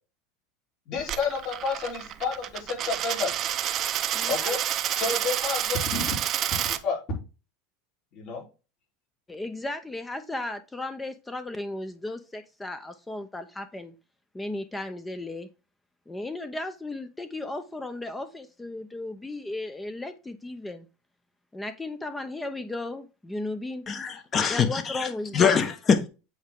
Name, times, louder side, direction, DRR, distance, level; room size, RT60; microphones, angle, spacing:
voice 1, 0.9-3.3 4.3-4.6 4.9-6.2 6.8-7.0 8.1-8.4, left 4 dB, 50° left, 3.9 m, -30 dB
Coin (dropping), 1.0-6.8, right 11 dB, 45° right, 0.7 m, -29 dB
voice 2, 4.1-4.6 9.3-13.9 14.3-15.5 16.1-20.9 21.5-23.8 24.4-25.6, left 2 dB, 10° left, 0.8 m, -35 dB
voice 3, 23.9-25.1 25.3-26.1, left 6 dB, 30° left, 1.4 m, -23 dB
8.0 x 4.6 x 3.7 m
supercardioid pair, 115°, 0 cm